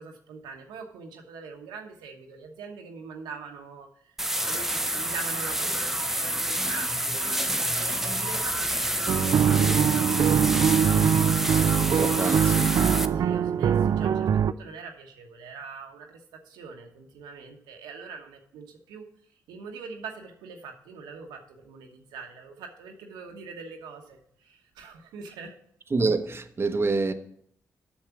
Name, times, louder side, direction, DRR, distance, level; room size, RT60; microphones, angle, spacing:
voice 1, 0.0-3.9 4.4-8.7 8.9-10.2 13.1-16.2 16.5-19.0 19.5-25.6, right 4 dB, 90° right, 1.1 m, -43 dB
sound 1, 4.2-13.1, right 1 dB, 5° right, 0.7 m, -28 dB
sound 2, 5.8-12.9, left 4 dB, 60° left, 1.0 m, -44 dB
sound 3, 9.1-14.5, right 8 dB, 65° right, 0.4 m, -22 dB
voice 2, 11.8-12.8 25.9-27.1, right 3 dB, 35° right, 0.9 m, -27 dB
7.3 x 6.4 x 7.1 m
supercardioid pair, 50°, 7 cm